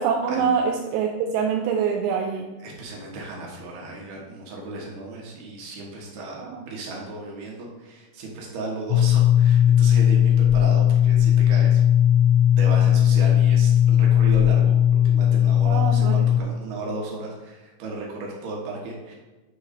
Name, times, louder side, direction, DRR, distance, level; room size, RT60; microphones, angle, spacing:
voice 1, 0.0-2.5 6.4-6.6 15.7-16.3, right 6 dB, 90° right, 1 dB, 2.5 m, -25 dB
voice 2, 2.6-11.8 12.6-19.2, right 2 dB, 70° right, -2 dB, 2.5 m, -35 dB
sound 1, 8.9-16.4, left 10 dB, 80° left, 2.5 m, -17 dB
9.3 x 3.1 x 4.9 m, 1.2 s
omnidirectional pair, 5.6 m